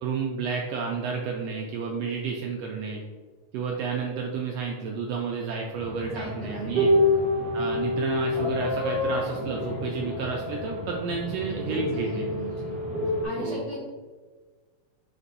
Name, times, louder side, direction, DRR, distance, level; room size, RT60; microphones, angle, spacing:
voice 1, 0.0-3.0 3.5-6.9 7.5-12.3 13.3-13.6, right 5 dB, 80° right, 0 dB, 1.4 m, -31 dB
sound 1, 5.8-13.2, left 1 dB, 50° right, 0.7 m, -28 dB
voice 2, 6.0-7.3 11.5-12.7 13.0-13.8, left 1 dB, 85° left, -6 dB, 0.9 m, -39 dB
sound 2, 6.2-6.5 8.6-10.2, left 2 dB, 45° left, 0.8 m, -32 dB
5.2 x 2.5 x 4.0 m, 1.4 s
omnidirectional pair, 3.3 m